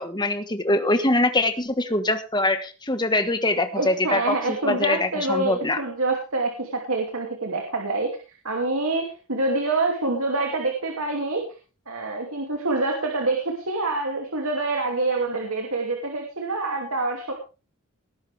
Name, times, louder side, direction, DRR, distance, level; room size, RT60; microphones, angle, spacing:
voice 1, 0.0-5.8, left 2 dB, 20° left, 9 dB, 1.4 m, -23 dB
voice 2, 3.7-8.1 8.4-11.4 11.9-17.3, right 2 dB, 75° right, 1 dB, 2.7 m, -26 dB
19.0 x 11.0 x 3.5 m, 0.33 s
head